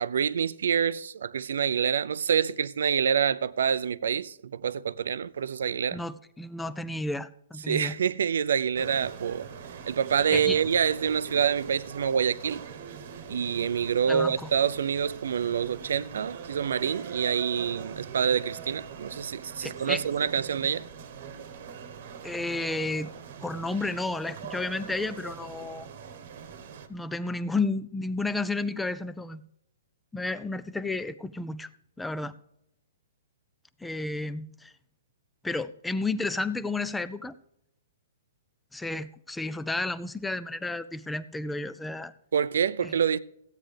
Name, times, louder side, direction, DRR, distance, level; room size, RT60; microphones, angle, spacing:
voice 1, 0.0-6.0 7.7-9.5 9.9-12.6 13.3-20.8 42.3-43.2, right 7 dB, 75° right, 0.5 m, -27 dB
voice 2, 5.9-8.0 10.3-10.6 14.1-14.5 19.6-20.0 22.2-23.1 23.4-25.9 26.9-29.4 30.1-31.7 32.0-32.3 33.8-34.7 35.4-37.4 38.7-42.1 42.8-43.0, left 2 dB, 5° left, 0.3 m, -32 dB
sound 1, 8.8-26.9, right 7 dB, 50° right, 1.1 m, -42 dB
14.5 x 8.9 x 3.4 m
hypercardioid pair, 165°, 0 cm